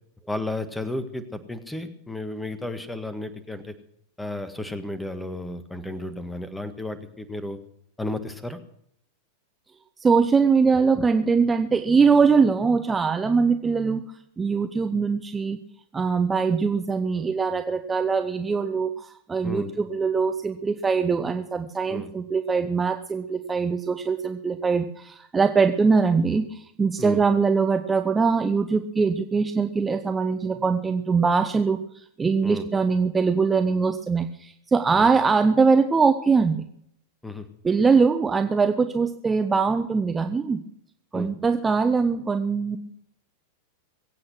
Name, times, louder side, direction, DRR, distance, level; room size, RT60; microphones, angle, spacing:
voice 1, 0.3-3.7 4.2-7.6 8.0-8.6 19.4-19.7 21.9-22.1 27.0-27.2 32.4-32.7 34.9-35.1 37.2-37.5 41.1-41.3, left 2 dB, 5° left, 11 dB, 1.6 m, -33 dB
voice 2, 10.0-14.0 14.4-15.6 15.9-36.6 37.6-40.6 41.1-42.8, right 5 dB, 15° right, 7 dB, 0.9 m, -22 dB
22.0 x 8.8 x 6.2 m, 0.71 s
figure-of-eight pair, 90°, 0 cm